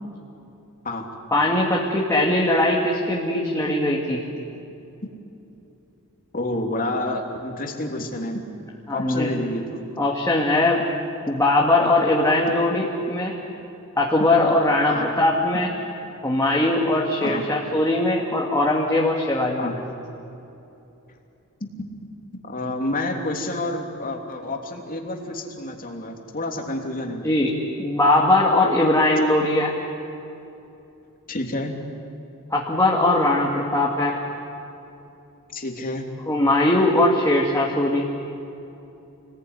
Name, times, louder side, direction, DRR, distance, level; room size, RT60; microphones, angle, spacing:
voice 1, 1.3-4.2 8.9-9.3 10.0-10.8 11.3-13.3 14.0-15.7 16.2-19.7 27.2-29.7 32.5-34.2 36.3-38.1, left 2 dB, 15° left, -3 dB, 2.4 m, -20 dB
voice 2, 6.3-8.5 8.9-9.9 14.9-15.1 17.2-17.4 19.6-19.7 21.6-21.7 22.5-27.3 31.3-31.7 35.5-36.1, left 1 dB, 40° left, 2 dB, 3.1 m, -29 dB
29.0 x 20.5 x 9.9 m, 2.9 s
head